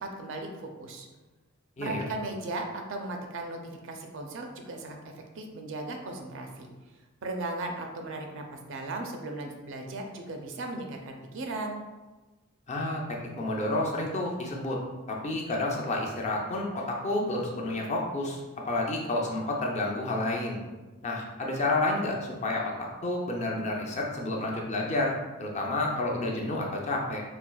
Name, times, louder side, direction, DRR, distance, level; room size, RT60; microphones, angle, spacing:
voice 1, 0.0-1.1 1.8-5.0 5.4-6.7 7.2-11.8, right 2 dB, 65° right, 3 dB, 0.5 m, -37 dB
voice 2, 12.7-13.0 13.3-14.8 15.1-20.6 21.0-22.7 23.0-25.1 25.4-27.2, left 2 dB, 35° left, -1 dB, 0.5 m, -30 dB
4.2 x 2.4 x 2.3 m, 1.2 s
head